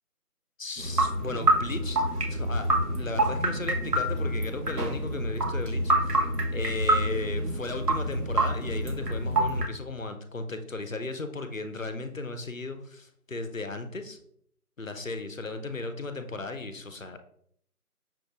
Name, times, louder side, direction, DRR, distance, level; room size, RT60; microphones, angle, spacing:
voice 1, 0.6-2.0 2.3-6.2 6.5-14.2 14.8-17.2, left 3 dB, 60° left, 8 dB, 0.6 m, -36 dB
sound 1, 0.8-9.7, right 1 dB, 80° right, 1.2 m, -27 dB
6.0 x 3.1 x 2.4 m, 0.67 s
figure-of-eight pair, 170°, 46 cm